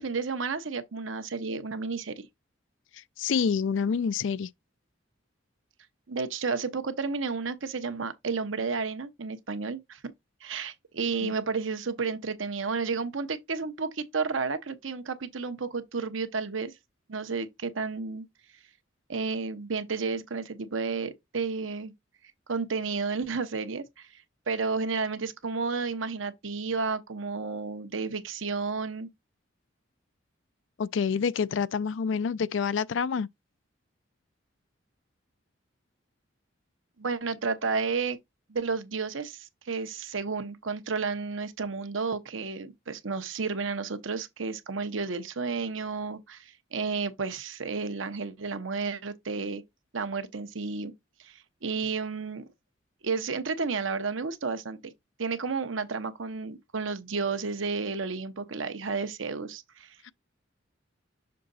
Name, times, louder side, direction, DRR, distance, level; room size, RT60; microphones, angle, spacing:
voice 1, 0.0-2.3 6.1-10.1 10.4-16.7 17.1-18.3 19.1-21.9 22.5-29.1 37.0-38.2 38.5-49.6 49.9-50.9 51.2-52.5 53.0-54.9 55.2-60.0, right 4 dB, 90° right, 0.9 m, -32 dB
voice 2, 3.2-4.5 11.2-11.3 30.8-33.3 60.0-60.1, left 6 dB, 75° left, 0.4 m, -27 dB
6.6 x 3.7 x 4.1 m
head